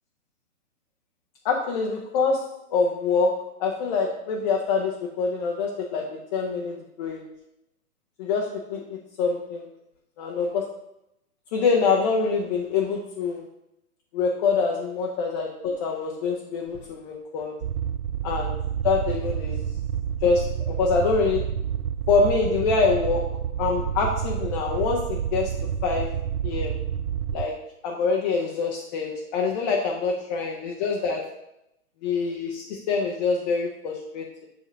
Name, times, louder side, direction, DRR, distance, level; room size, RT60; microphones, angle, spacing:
voice 1, 1.4-7.2 8.2-9.7 10.2-10.8 11.5-13.4 14.1-17.5 18.2-18.6 18.8-19.6 20.2-21.5 22.1-26.1 26.4-26.8 27.3-31.3 32.0-34.5, left 4 dB, 30° left, 0 dB, 0.8 m, -25 dB
sound 1, 17.6-27.5, right 9 dB, 75° right, 0.6 m, -29 dB
7.6 x 3.8 x 5.3 m, 0.82 s
figure-of-eight pair, 125°, 45 cm